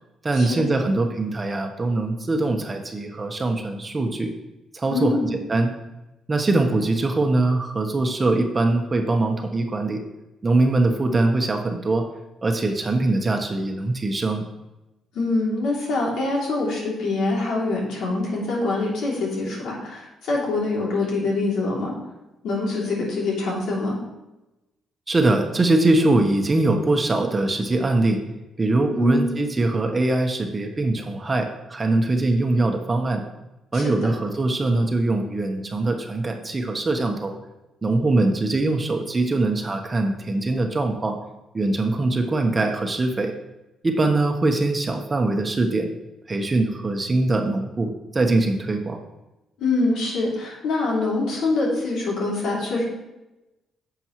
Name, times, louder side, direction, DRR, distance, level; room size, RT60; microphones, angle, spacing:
voice 1, 0.2-4.3 4.7-5.7 6.3-10.0 10.4-12.0 12.4-14.4 25.1-28.2 28.6-33.2 33.7-37.4 37.8-41.2 41.5-43.3 43.8-45.9 46.3-49.0, right 2 dB, 25° right, 4 dB, 1.1 m, -22 dB
voice 2, 4.9-5.4 15.1-21.9 22.4-24.0 28.9-29.4 33.7-34.1 49.6-52.9, left 2 dB, 80° left, -4 dB, 2.9 m, -24 dB
9.9 x 6.9 x 3.1 m, 0.99 s
cardioid pair, 90°, 0 cm